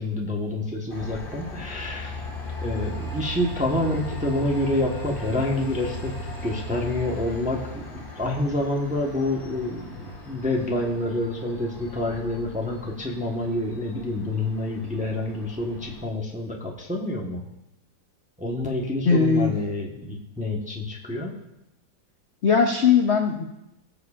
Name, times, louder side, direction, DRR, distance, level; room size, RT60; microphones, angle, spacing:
voice 1, 0.0-2.2 2.6-6.1 6.4-17.4 18.4-21.3, left 1 dB, 5° right, -1 dB, 0.8 m, -28 dB
Train, 0.9-16.0, left 1 dB, 30° left, 1.6 m, -37 dB
voice 2, 19.1-19.5 22.4-23.4, left 5 dB, 60° left, 3 dB, 0.7 m, -19 dB
19.5 x 6.9 x 2.4 m, 0.89 s
omnidirectional pair, 2.0 m